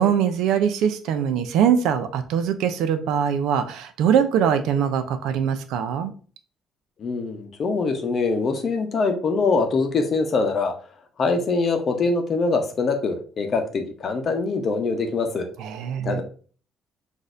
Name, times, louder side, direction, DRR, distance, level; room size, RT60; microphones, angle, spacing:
voice 1, 0.0-6.1 15.6-16.2, right 8 dB, 85° right, 9 dB, 0.5 m, -22 dB
voice 2, 7.0-10.7 11.2-15.5 16.0-16.2, left 4 dB, 35° left, 5 dB, 0.7 m, -23 dB
6.1 x 2.6 x 2.6 m, 0.40 s
cardioid pair, 160°, 0 cm